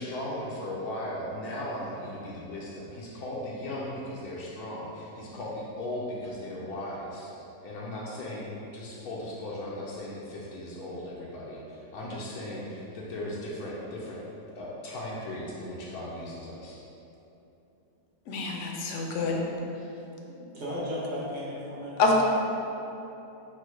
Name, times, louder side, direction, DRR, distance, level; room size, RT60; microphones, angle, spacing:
voice 1, 0.0-7.3 7.6-14.2 14.5-16.8, left 1 dB, 85° left, -5 dB, 1.1 m, -37 dB
voice 2, 18.3-19.4 22.0-22.2, left 3 dB, 65° left, 0 dB, 0.8 m, -26 dB
voice 3, 20.1-22.2, equal, 35° right, -8 dB, 0.9 m, -36 dB
4.4 x 2.1 x 4.4 m, 2.9 s
omnidirectional pair, 1.6 m